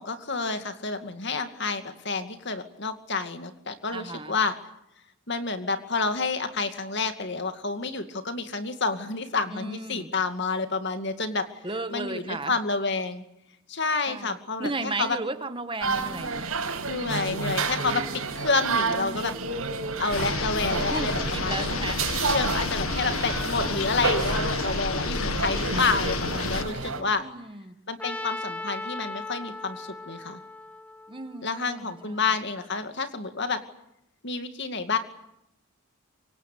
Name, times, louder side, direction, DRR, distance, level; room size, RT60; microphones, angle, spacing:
voice 1, 0.0-4.6 5.3-11.5 11.9-13.2 13.7-15.2 16.9-19.3 20.0-21.7 22.3-27.2 27.9-30.4 31.4-33.6 34.2-35.0, left 4 dB, 55° left, 8 dB, 2.3 m, -29 dB
voice 2, 3.9-4.4 9.5-10.1 11.6-12.6 14.1-16.5 20.9-22.0 27.2-27.8 31.1-32.2, right 3 dB, 25° right, 10 dB, 1.4 m, -35 dB
sound 1, 15.8-27.0, right 3 dB, 85° right, 5.1 m, -30 dB
sound 2, 20.1-26.6, left 4 dB, 80° left, 1.6 m, -30 dB
Trumpet, 28.0-32.0, left 2 dB, 5° left, 1.2 m, -38 dB
25.5 x 23.0 x 8.4 m, 0.83 s
head